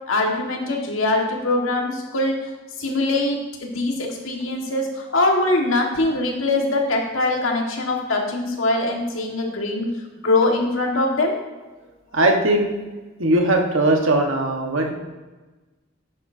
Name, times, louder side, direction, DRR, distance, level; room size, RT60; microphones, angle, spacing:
voice 1, 0.1-2.4 2.8-9.9 10.2-11.3, left 2 dB, 85° left, 1 dB, 1.7 m, -22 dB
voice 2, 12.1-12.7 13.2-14.9, right 1 dB, 85° right, 2 dB, 1.4 m, -19 dB
10.5 x 9.2 x 2.8 m, 1.2 s
head